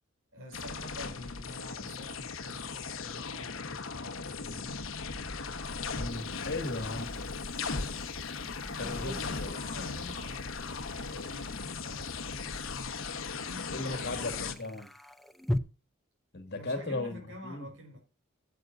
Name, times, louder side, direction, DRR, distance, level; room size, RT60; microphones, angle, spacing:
voice 1, 0.3-4.9 8.4-14.8 16.5-18.0, left 1 dB, 65° right, 5.0 m, -48 dB
sound 1, 0.5-14.5, left 4 dB, 70° left, 1.1 m, -37 dB
sound 2, 1.9-2.0 5.4-15.6, left 1 dB, ahead, 0.6 m, -43 dB
voice 2, 5.9-7.2 8.7-9.6 13.7-14.9 16.3-17.7, left 2 dB, 55° left, 1.9 m, -37 dB
17.0 x 8.0 x 2.6 m
head